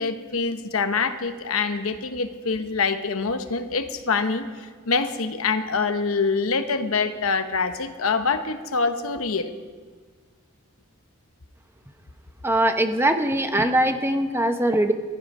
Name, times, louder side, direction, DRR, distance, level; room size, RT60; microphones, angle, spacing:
voice 1, 0.0-9.5, left 4 dB, 75° left, 9 dB, 0.9 m, -25 dB
voice 2, 12.4-14.9, right 1 dB, 10° right, 6 dB, 0.8 m, -21 dB
14.5 x 13.5 x 5.5 m, 1.5 s
head